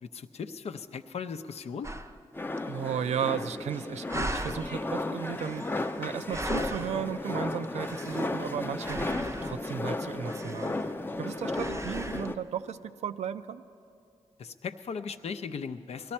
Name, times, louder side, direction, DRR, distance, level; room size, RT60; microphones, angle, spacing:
voice 1, 0.0-1.9 14.4-16.1, left 6 dB, 65° left, 10 dB, 0.6 m, -37 dB
sound 1, 1.8-2.2 2.6-2.7 2.9-3.7 4.1-4.7 5.3-7.2 7.6-8.5 8.8-9.7 10.2-11.2 11.5-12.3, right 1 dB, 25° right, 0.6 m, -39 dB
sound 2, 2.3-12.4, left 2 dB, 20° left, 0.6 m, -34 dB
voice 2, 2.7-10.8 11.2-13.6, right 8 dB, 75° right, 12 dB, 0.4 m, -35 dB
19.0 x 13.0 x 4.3 m, 2.4 s
cardioid pair, 55°, 11 cm